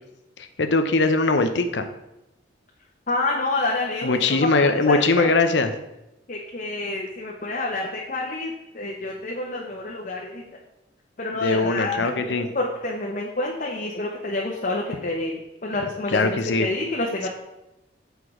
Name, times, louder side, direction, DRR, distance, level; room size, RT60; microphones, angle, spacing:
voice 1, 0.4-1.9 4.0-5.7 11.3-12.5 15.8-16.7 17.2-17.3, left 3 dB, 75° left, 8 dB, 0.8 m, -21 dB
voice 2, 3.1-4.2 4.5-5.3 6.3-10.4 11.2-17.3, left 2 dB, 45° left, -1 dB, 0.9 m, -28 dB
8.3 x 4.7 x 4.9 m, 0.91 s
head